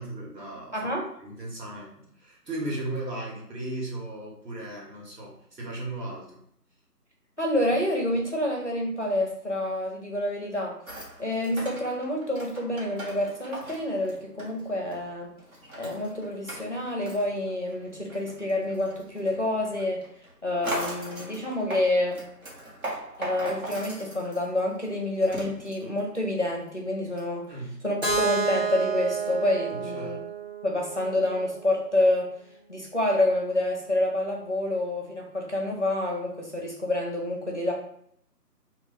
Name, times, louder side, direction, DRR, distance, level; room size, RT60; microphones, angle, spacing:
voice 1, 0.0-0.7 1.2-6.3 27.5-27.8 29.9-30.2, right 1 dB, 75° right, -2 dB, 1.3 m, -36 dB
voice 2, 0.7-1.1 7.4-10.8 11.2-15.3 15.7-20.1 20.4-22.2 23.2-27.4 27.8-30.2 30.6-32.3 32.7-37.7, left 1 dB, 50° left, 0 dB, 0.5 m, -28 dB
sound 1, 10.9-15.1 15.4-26.7 27.2-27.3, right 1 dB, 60° right, 1.2 m, -40 dB
Keyboard (musical), 28.0-31.9, right 5 dB, 40° right, 0.6 m, -30 dB
2.3 x 2.3 x 3.9 m, 0.70 s
figure-of-eight pair, 180°, 49 cm